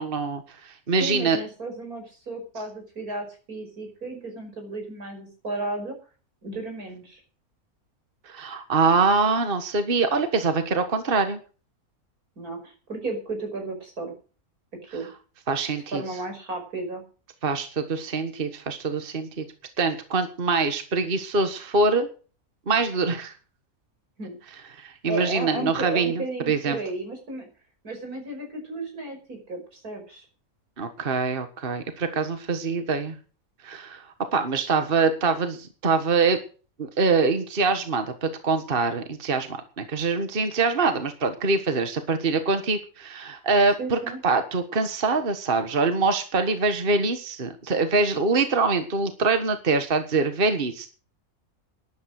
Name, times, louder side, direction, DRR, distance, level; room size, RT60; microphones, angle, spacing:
voice 1, 0.0-1.4 8.2-11.4 15.5-16.0 17.4-19.4 19.8-22.1 22.7-23.3 24.7-26.8 30.8-33.2 33.6-34.0 34.3-36.4 36.8-50.9, right 4 dB, 40° right, 8 dB, 1.6 m, -24 dB
voice 2, 1.0-6.0 6.4-7.2 12.4-14.1 14.8-15.1 15.9-17.0 24.2-24.4 25.1-27.5 27.8-30.3 43.8-44.2, right 2 dB, 85° right, 3 dB, 6.0 m, -34 dB
12.5 x 11.0 x 6.4 m, 0.37 s
omnidirectional pair, 1.5 m